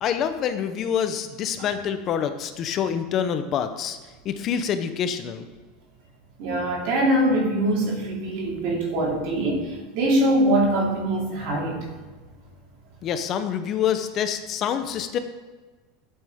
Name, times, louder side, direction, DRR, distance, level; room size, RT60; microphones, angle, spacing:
voice 1, 0.0-4.0 4.2-5.5 13.0-15.2, left 8 dB, 35° left, 9 dB, 0.6 m, -26 dB
voice 2, 6.4-11.9, right 1 dB, 60° right, 0 dB, 2.7 m, -23 dB
12.0 x 8.3 x 3.5 m, 1.3 s
supercardioid pair, 155°, 0 cm